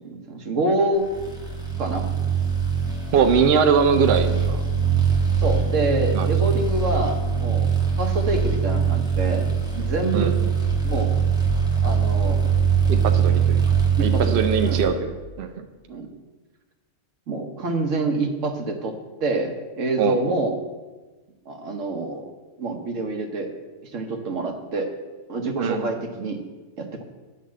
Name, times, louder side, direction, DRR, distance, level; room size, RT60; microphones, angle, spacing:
voice 1, 0.0-1.1 1.8-2.0 5.4-7.7 8.0-10.4 10.8-11.2 11.8-12.5 14.0-14.9 15.9-16.1 17.3-20.6 21.5-22.3 22.6-23.5 23.8-24.9 25.3-26.4 26.8-27.0, right 2 dB, 80° right, 4 dB, 1.4 m, -27 dB
sound 1, 1.1-14.9, right 6 dB, 5° right, 1.1 m, -22 dB
voice 2, 3.1-4.6 6.1-6.3 10.1-10.3 12.9-13.6 14.0-15.1 15.4-15.5 20.0-20.4 25.6-25.9, right 6 dB, 60° right, 6 dB, 0.8 m, -21 dB
10.0 x 4.1 x 7.3 m, 1.3 s
omnidirectional pair, 1.3 m